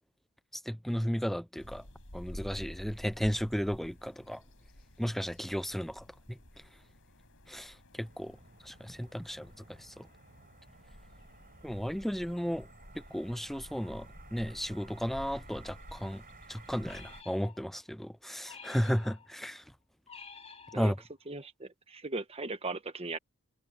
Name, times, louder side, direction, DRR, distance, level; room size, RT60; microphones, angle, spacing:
voice 1, 0.5-1.8 2.1-4.4 5.0-6.4 7.5-8.4 8.6-9.5 9.8-10.1 11.6-12.7 13.1-16.2 16.5-19.6 20.8-21.0, equal, ahead, 0.4 m, -34 dB
sound 1, 1.6-17.2, equal, 65° left, 6.6 m, -51 dB
sound 2, 8.1-17.2, right 3 dB, 40° right, 4.9 m, -56 dB
sound 3, 16.8-17.9 18.4-19.5 20.1-21.3, left 5 dB, 30° left, 4.1 m, -51 dB
voice 2, 21.3-23.2, right 3 dB, 25° right, 1.2 m, -38 dB
head